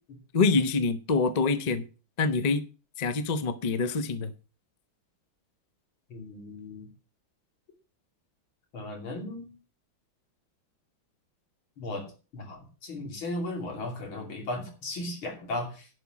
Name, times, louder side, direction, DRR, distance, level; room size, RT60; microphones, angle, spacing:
voice 1, 0.3-1.8 2.2-2.6 3.0-4.3, left 4 dB, 60° left, 0.4 m, -25 dB
voice 2, 6.1-6.9 8.7-9.5 11.8-12.1 12.3-15.9, left 2 dB, 80° left, 3.6 m, -36 dB
11.0 x 5.3 x 7.5 m
omnidirectional pair, 2.2 m